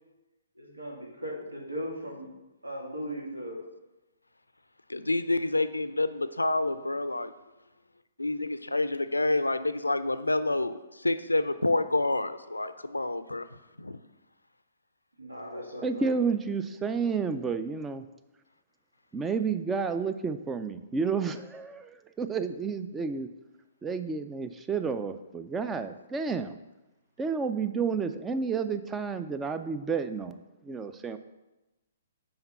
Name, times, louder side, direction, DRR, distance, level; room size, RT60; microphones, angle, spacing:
voice 1, 0.5-2.3 2.6-3.6 15.2-16.2, equal, 90° right, -1 dB, 1.6 m, -38 dB
voice 2, 4.9-7.3 8.2-13.5 13.8-14.0, left 2 dB, 85° left, 12 dB, 0.4 m, -28 dB
voice 3, 15.8-18.1 19.1-23.3 23.8-26.5 27.2-31.2, right 5 dB, 15° right, 10 dB, 0.4 m, -31 dB
5.7 x 4.4 x 5.4 m, 1.0 s
figure-of-eight pair, 125°, 0 cm